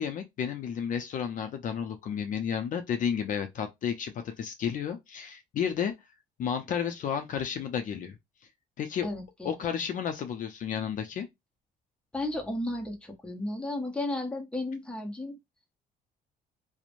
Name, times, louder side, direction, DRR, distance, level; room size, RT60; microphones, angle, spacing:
voice 1, 0.0-5.9 6.4-8.1 8.8-9.1 9.4-11.3, left 8 dB, 50° left, 0.5 m, -32 dB
voice 2, 9.0-9.8 12.1-15.4, left 1 dB, 5° left, 0.7 m, -34 dB
2.9 x 2.1 x 2.5 m
cardioid pair, 110°, 17 cm